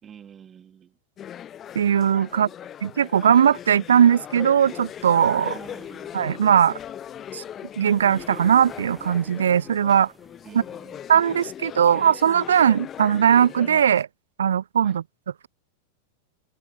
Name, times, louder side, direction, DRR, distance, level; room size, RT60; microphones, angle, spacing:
voice 1, 0.0-1.0 2.3-2.7 5.5-6.3 10.4-11.0 14.8-15.0, right 8 dB, 25° right, 3.0 m, -48 dB
sound 1, 1.2-14.0, left 10 dB, 25° left, 0.4 m, -39 dB
voice 2, 1.8-2.5 2.8-5.5 6.1-6.8 7.3-7.4 7.8-10.1 11.1-14.1 14.4-15.0, right 8 dB, 65° right, 0.3 m, -19 dB
sound 2, 4.2-13.4, right 2 dB, 5° right, 4.9 m, -53 dB
open air
figure-of-eight pair, 90°, 0 cm